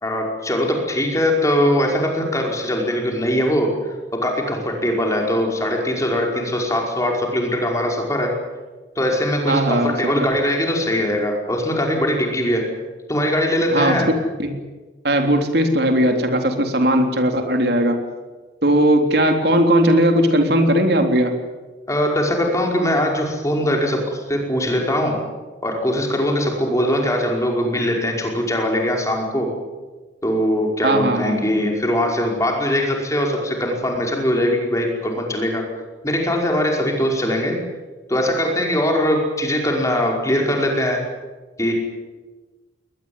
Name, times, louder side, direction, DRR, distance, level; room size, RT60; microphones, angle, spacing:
voice 1, 0.0-3.7 4.1-8.4 9.0-12.7 13.1-14.1 21.9-25.2 25.6-29.5 30.2-35.6 36.0-37.6 38.1-41.0 41.6-41.7, left 1 dB, 15° left, 1 dB, 5.2 m, -21 dB
voice 2, 9.5-10.3 13.7-14.0 14.4-14.6 15.0-18.0 18.6-21.4 30.8-31.4, right 1 dB, 60° right, 5 dB, 3.6 m, -18 dB
21.5 x 20.0 x 9.6 m, 1.3 s
head